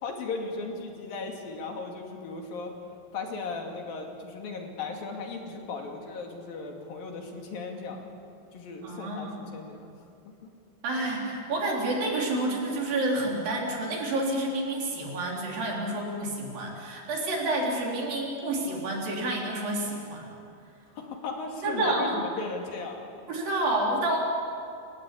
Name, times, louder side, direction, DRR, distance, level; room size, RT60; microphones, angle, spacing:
voice 1, 0.0-2.7 3.1-8.1 8.5-9.9 10.3-10.5 21.0-23.1, left 4 dB, 60° left, 2 dB, 4.1 m, -36 dB
voice 2, 8.8-9.3 10.8-20.3 21.6-22.1 23.3-24.2, right 2 dB, 60° right, -2 dB, 5.6 m, -29 dB
29.5 x 16.0 x 8.6 m, 2.4 s
omnidirectional pair, 4.8 m